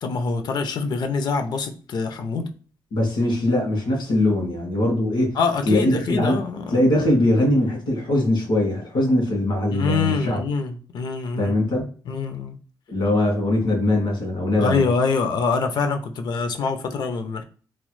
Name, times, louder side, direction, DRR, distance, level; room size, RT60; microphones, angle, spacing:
voice 1, 0.0-2.5 5.3-6.8 9.7-11.7 12.1-12.6 14.6-17.4, left 4 dB, 65° left, 0.5 m, -25 dB
voice 2, 2.9-5.4 5.6-6.4 6.7-10.4 11.4-11.8 12.9-14.8, left 1 dB, 85° left, 1.5 m, -21 dB
3.0 x 2.1 x 3.0 m
wide cardioid pair, 145°, 8 cm